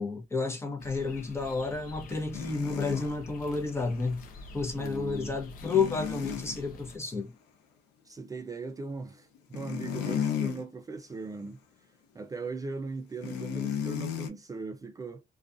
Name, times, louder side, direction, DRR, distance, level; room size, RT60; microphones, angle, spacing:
voice 1, 0.0-4.3 4.5-7.3, left 4 dB, 15° left, 0.8 m, -31 dB
sound 1, 0.8-7.0, left 2 dB, 55° left, 0.6 m, -47 dB
sound 2, 2.3-3.2 5.6-6.6 9.4-10.6 11.1-11.3 13.2-14.3, left 9 dB, 90° left, 0.7 m, -33 dB
voice 2, 4.7-5.4 8.1-11.6 12.1-15.2, right 3 dB, 20° right, 0.4 m, -39 dB
2.4 x 2.3 x 2.4 m
cardioid pair, 110°, 17 cm